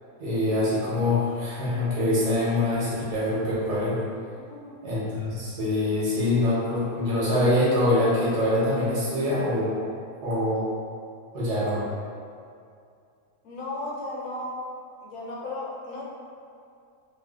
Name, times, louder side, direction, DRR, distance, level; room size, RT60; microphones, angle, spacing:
voice 1, 0.2-4.0 4.8-9.8 10.2-10.7 11.3-11.8, left 1 dB, 80° right, -8 dB, 1.5 m, -24 dB
voice 2, 4.3-4.8 13.4-14.6 15.0-16.0, left 2 dB, 75° left, -5 dB, 1.1 m, -35 dB
3.5 x 2.5 x 2.4 m, 2.4 s
omnidirectional pair, 1.7 m